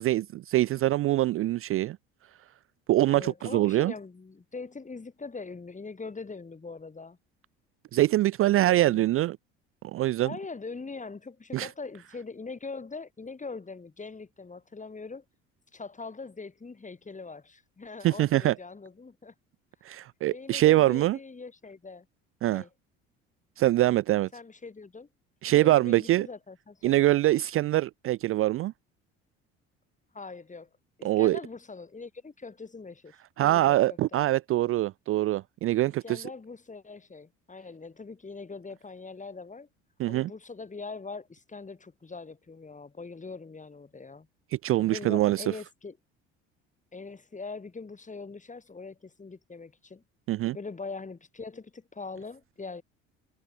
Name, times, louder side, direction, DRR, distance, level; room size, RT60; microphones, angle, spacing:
voice 1, 0.0-2.0 2.9-3.9 7.9-9.4 9.9-10.3 11.5-11.7 18.0-18.5 19.8-21.2 22.4-22.6 23.6-24.3 25.4-26.3 26.8-28.7 31.0-31.4 33.4-36.2 40.0-40.3 44.5-45.4 50.3-50.6, right 15 dB, 45° right, 0.4 m, -24 dB
voice 2, 3.1-7.2 8.6-9.1 10.2-15.2 15.7-19.3 20.3-22.1 22.5-22.7 24.3-25.1 25.6-27.1 30.1-30.7 31.0-34.3 36.0-39.7 40.1-44.3 44.8-46.0 46.9-50.0 50.5-52.8, left 4 dB, 25° left, 4.5 m, -42 dB
hypercardioid pair, 65°, 32 cm